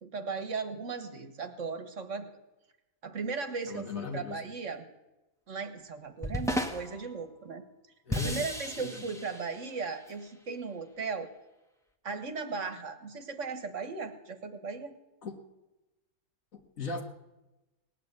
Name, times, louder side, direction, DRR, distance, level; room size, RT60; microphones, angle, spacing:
voice 1, 0.0-2.4 3.0-4.8 5.5-7.6 8.1-11.3 12.0-14.9, right 4 dB, 55° right, 8 dB, 1.6 m, -37 dB
voice 2, 3.7-4.4 8.1-8.5 8.8-9.1 15.2-15.3 16.5-17.0, left 4 dB, 65° left, 4 dB, 2.1 m, -38 dB
sound 1, 6.2-7.0 8.1-10.1, left 1 dB, ahead, 1.1 m, -34 dB
18.0 x 9.8 x 8.1 m, 1.0 s
omnidirectional pair, 1.5 m